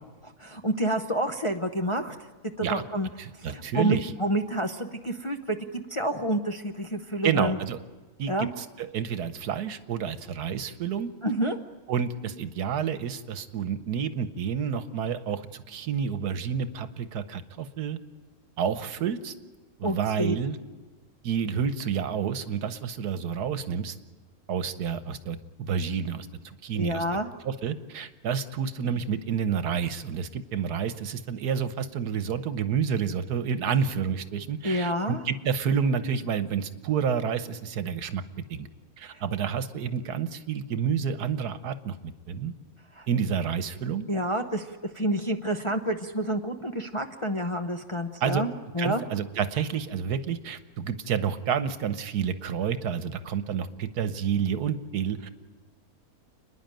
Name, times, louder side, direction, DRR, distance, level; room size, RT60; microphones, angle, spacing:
voice 1, 0.4-2.1 2.6-3.1 3.4-7.6 8.3-8.5 11.2-11.6 19.8-20.4 26.8-27.3 34.6-35.2 39.1-39.2 43.0-43.1 44.1-44.7 44.9-48.5 48.7-49.0, right 1 dB, 30° left, 4 dB, 0.6 m, -28 dB
voice 2, 3.2-4.1 7.2-7.8 8.2-11.1 11.9-18.0 18.6-19.3 19.8-20.6 21.2-23.9 24.5-27.0 27.4-38.2 38.5-38.7 39.0-42.5 43.1-44.0 48.2-48.4 48.8-55.3, right 7 dB, 80° right, 11 dB, 1.5 m, -29 dB
29.5 x 10.5 x 9.0 m, 1.3 s
omnidirectional pair, 1.7 m